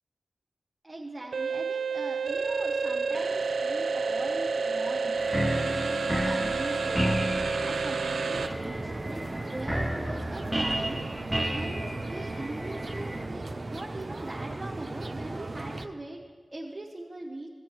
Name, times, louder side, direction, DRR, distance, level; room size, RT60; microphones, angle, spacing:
voice 1, 0.8-5.1 5.5-7.3 7.6-11.0 11.4-16.2 16.5-17.5, right 2 dB, 30° right, -3 dB, 1.1 m, -41 dB
sound 1, 1.3-8.5, right 4 dB, 85° right, 0.5 m, -29 dB
sound 2, 5.2-13.3, equal, 10° right, 0.9 m, -32 dB
sound 3, 8.3-15.9, right 2 dB, 45° right, 0.6 m, -37 dB
16.0 x 8.4 x 3.1 m, 1.4 s
cardioid pair, 45°, 0 cm